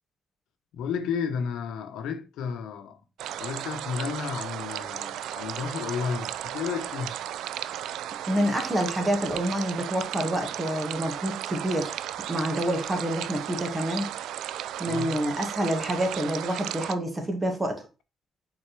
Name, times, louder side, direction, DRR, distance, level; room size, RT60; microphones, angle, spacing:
voice 1, 0.7-3.0 3.4-7.2 14.8-15.2, left 6 dB, 85° left, 0.8 m, -32 dB
sound 1, 3.2-16.9, right 11 dB, 85° right, 0.4 m, -35 dB
voice 2, 8.3-12.0 12.3-14.1 14.8-17.8, right 1 dB, 20° right, 2.2 m, -28 dB
6.4 x 4.2 x 4.5 m
cardioid pair, 90°, 0 cm